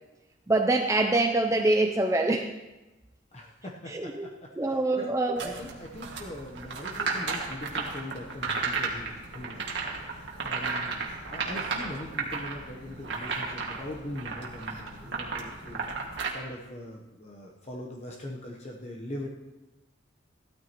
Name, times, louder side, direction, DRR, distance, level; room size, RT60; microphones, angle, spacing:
voice 1, 0.5-2.5 3.9-4.3 4.6-5.6, right 2 dB, 15° right, 4 dB, 0.5 m, -25 dB
voice 2, 3.3-5.1 5.4-9.7 10.0-15.9 16.3-19.3, left 1 dB, 35° left, -1 dB, 1.0 m, -41 dB
sound 1, 5.4-16.3, right 4 dB, 70° right, 2.0 m, -34 dB
16.5 x 13.0 x 3.0 m, 1.1 s
head